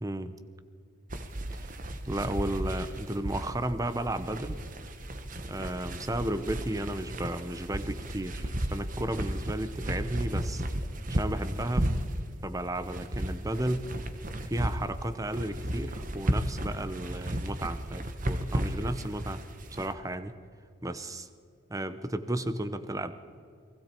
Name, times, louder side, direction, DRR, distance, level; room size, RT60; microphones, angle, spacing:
voice 1, 0.0-0.3 1.5-1.7 2.0-4.6 5.5-10.6 11.1-11.9 12.4-13.8 14.4-19.4 19.7-20.3 20.8-21.3 21.7-23.1, right 1 dB, 15° right, 11 dB, 0.9 m, -33 dB
sound 1, 1.1-19.9, right 1 dB, 40° right, 1.3 m, -34 dB
29.5 x 20.5 x 4.6 m, 2.3 s
head